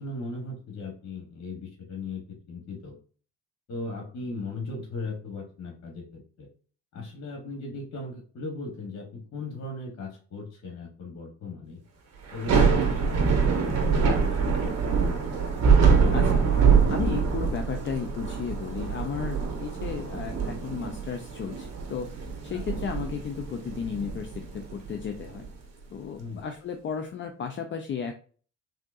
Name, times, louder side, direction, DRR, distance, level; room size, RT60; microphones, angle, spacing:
voice 1, 0.0-3.0 3.7-6.5 6.9-11.8 12.3-15.0 22.5-22.6 26.2-26.5, left 2 dB, 60° left, 1 dB, 1.1 m, -38 dB
Thunder / Rain, 12.3-25.5, right 5 dB, 60° right, 0.9 m, -24 dB
voice 2, 16.1-22.2 22.4-25.5 25.9-28.1, left 6 dB, 40° left, 5 dB, 0.4 m, -34 dB
3.6 x 2.7 x 2.4 m, 0.41 s
cardioid pair, 90°, 30 cm